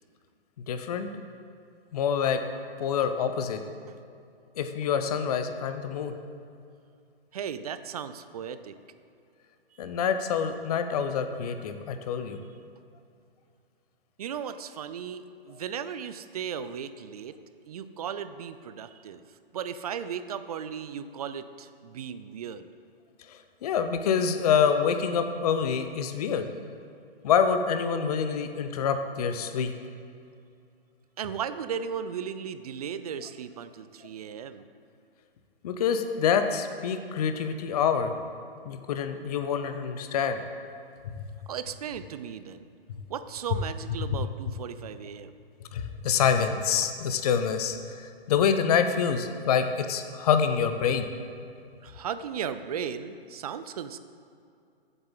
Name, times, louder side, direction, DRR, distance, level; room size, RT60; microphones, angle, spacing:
voice 1, 0.7-1.1 1.9-2.4 2.8-3.6 4.6-6.1 9.8-12.4 23.3-26.5 27.2-29.7 35.6-38.1 38.6-40.4 45.7-51.1, left 7 dB, 40° left, 8 dB, 0.7 m, -26 dB
voice 2, 7.3-8.7 14.2-17.4 17.7-19.2 19.5-22.7 31.2-34.7 41.5-42.6 43.1-45.3 51.8-54.0, right 7 dB, 40° right, 12 dB, 0.5 m, -36 dB
14.5 x 8.0 x 3.9 m, 2.5 s
figure-of-eight pair, 130°, 31 cm